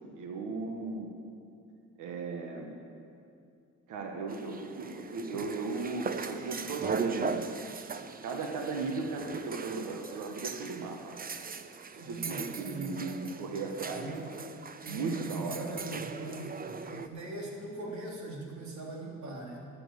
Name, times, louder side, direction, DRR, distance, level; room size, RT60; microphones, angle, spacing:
voice 1, 0.2-1.1 2.0-2.7 3.9-7.7 8.2-11.3 12.0-14.3 14.9-15.7, right 3 dB, 90° right, 3 dB, 1.4 m, -36 dB
sound 1, 4.3-17.1, right 5 dB, 30° right, 0.7 m, -39 dB
voice 2, 11.9-13.0 14.0-14.3 14.8-16.6 16.9-19.7, right 2 dB, 70° right, -1 dB, 3.0 m, -41 dB
12.0 x 8.9 x 8.3 m, 2.4 s
cardioid pair, 90°, 30 cm